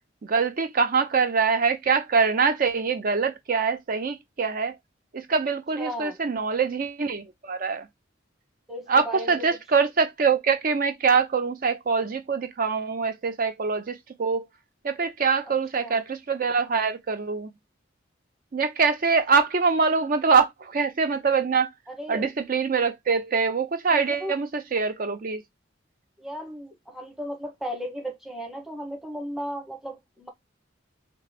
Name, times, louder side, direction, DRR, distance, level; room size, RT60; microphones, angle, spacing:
voice 1, 0.2-4.8 5.1-7.9 8.9-14.5 14.8-17.5 18.5-21.7 22.1-25.4, right 5 dB, 50° right, 0.5 m, -24 dB
voice 2, 5.8-6.2 8.7-9.4 15.7-16.0 21.9-22.3 23.9-24.3 26.2-30.3, equal, ahead, 1.0 m, -35 dB
3.7 x 3.3 x 3.3 m
head